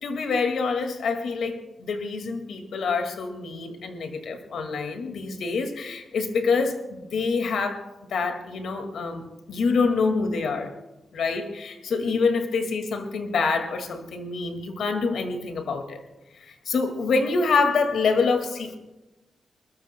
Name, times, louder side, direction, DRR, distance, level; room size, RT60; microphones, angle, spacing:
voice 1, 0.0-10.7 11.1-16.0 16.4-18.8, left 4 dB, 85° left, 6 dB, 1.9 m, -26 dB
21.5 x 21.0 x 2.2 m, 1.0 s
wide cardioid pair, 105°, 0 cm